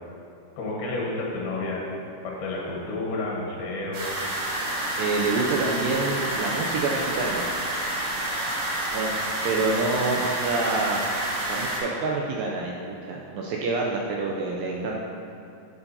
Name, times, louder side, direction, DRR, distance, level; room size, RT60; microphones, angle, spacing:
voice 1, 0.6-1.9 2.2-4.2, left 2 dB, 80° left, -3 dB, 3.1 m, -30 dB
sound 1, 3.9-11.8, right 1 dB, 60° right, 2.6 m, -29 dB
voice 2, 5.0-7.5 8.9-11.0 11.5-12.7 13.0-14.9, right 3 dB, 85° right, -2 dB, 2.1 m, -27 dB
12.0 x 7.0 x 2.8 m, 2.5 s
omnidirectional pair, 4.5 m